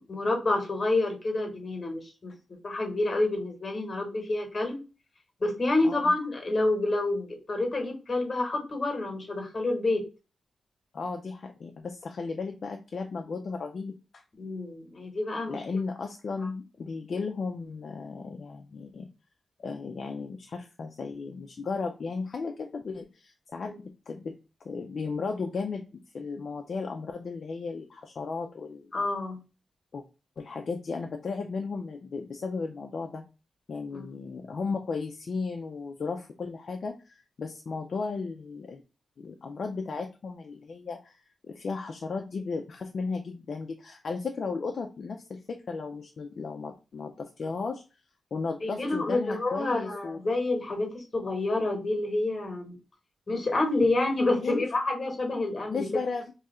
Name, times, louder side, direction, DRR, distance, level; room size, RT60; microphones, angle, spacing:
voice 1, 0.1-2.3 2.6-4.8 5.4-10.0 14.4-15.6 16.4-16.5 28.9-29.4 33.9-34.1 48.6-52.8 53.3-55.9, left 2 dB, 35° left, 3 dB, 1.0 m, -28 dB
voice 2, 10.9-14.2 15.5-19.1 19.6-24.3 24.6-28.9 29.9-30.0 30.4-33.2 33.7-38.8 39.2-47.8 48.3-50.2 54.4-54.7 55.7-56.3, left 4 dB, 55° left, 4 dB, 0.3 m, -35 dB
2.7 x 2.4 x 4.2 m, 0.32 s
wide cardioid pair, 140°, 0 cm